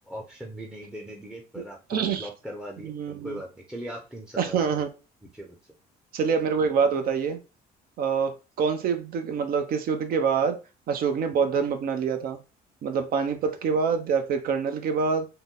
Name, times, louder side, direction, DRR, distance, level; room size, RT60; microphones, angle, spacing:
voice 1, 0.1-4.9 5.3-5.6, equal, 5° right, 0.6 m, -39 dB
voice 2, 1.9-2.3 2.8-3.4 4.4-4.9 6.1-7.4 8.0-10.6 10.9-12.4 12.8-15.3, right 6 dB, 60° right, 0.7 m, -26 dB
3.9 x 2.1 x 3.7 m
cardioid pair, 110°, 17 cm